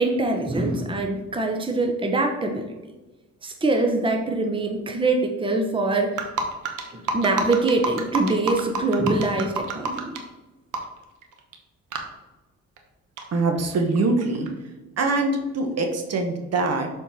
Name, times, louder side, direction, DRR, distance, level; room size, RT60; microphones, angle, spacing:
voice 1, 0.0-2.7 3.4-6.2 6.9-10.2, right 2 dB, 15° right, 3 dB, 0.9 m, -24 dB
sound 1, 6.2-10.2 10.7-11.0 11.2-11.6 11.9-12.0 12.8-12.9 13.2-14.5, right 4 dB, 85° right, 1.1 m, -28 dB
voice 2, 13.3-14.5 15.0-16.9, right 3 dB, 55° right, 4 dB, 1.3 m, -23 dB
7.0 x 4.4 x 4.6 m, 1.1 s
cardioid pair, 90°, 30 cm